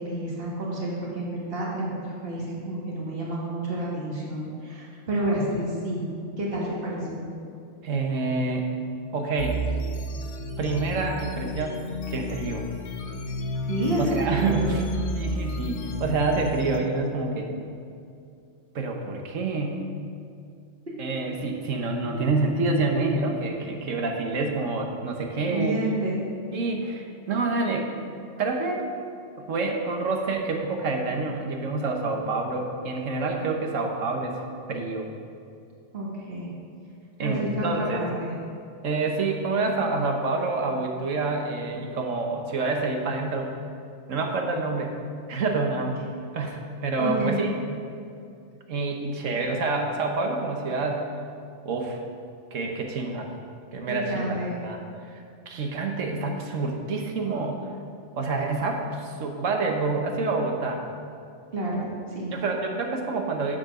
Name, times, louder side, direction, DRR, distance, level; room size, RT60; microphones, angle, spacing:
voice 1, 0.0-6.0 6.4-7.3 13.7-14.1 14.4-14.7 25.5-26.2 35.9-36.5 37.2-38.3 47.0-47.5 53.9-54.5 61.5-62.3, right 1 dB, 45° right, -4 dB, 1.9 m, -29 dB
voice 2, 7.8-8.7 9.1-9.6 10.6-11.8 12.1-12.6 14.0-14.8 15.1-17.5 18.7-19.9 21.0-25.8 26.5-27.9 28.4-28.9 29.4-35.1 37.2-38.0 38.8-43.6 44.1-44.9 45.3-46.0 46.3-47.5 48.7-51.1 51.6-52.0 52.5-53.3 53.7-57.6 58.2-60.8 62.3-63.6, right 3 dB, 75° right, 3 dB, 1.4 m, -27 dB
sound 1, 9.4-16.8, equal, 65° left, 1.0 m, -32 dB
7.5 x 7.4 x 6.0 m, 2.5 s
omnidirectional pair, 1.3 m